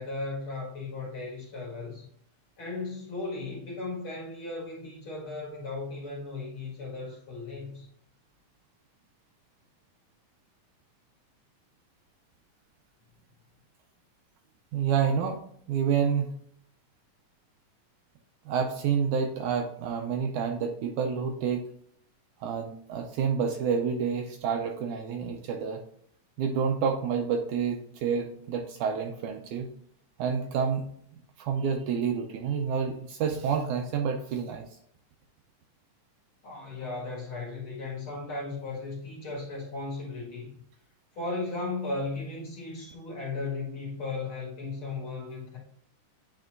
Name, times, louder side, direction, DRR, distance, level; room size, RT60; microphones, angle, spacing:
voice 1, 0.0-2.1 2.6-7.9 36.4-40.6 41.1-45.6, left 3 dB, 45° left, -4 dB, 2.4 m, -36 dB
voice 2, 14.7-15.4 15.7-16.3 18.5-21.7 22.4-25.8 26.4-29.7 30.2-30.9 31.4-34.6, right 6 dB, 80° right, 5 dB, 1.8 m, -28 dB
9.3 x 4.3 x 2.5 m, 0.65 s
omnidirectional pair, 3.9 m